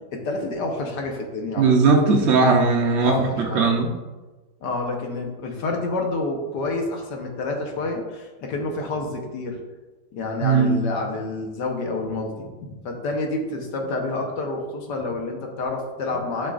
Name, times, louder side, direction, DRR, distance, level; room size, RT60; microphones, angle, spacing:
voice 1, 0.1-1.9 3.0-3.7 4.6-9.6 10.1-16.5, left 3 dB, 65° left, 2 dB, 1.6 m, -28 dB
voice 2, 1.6-3.1 3.5-3.9 10.4-10.8, right 4 dB, 65° right, 0 dB, 0.7 m, -18 dB
11.5 x 5.1 x 2.5 m, 1.2 s
omnidirectional pair, 2.0 m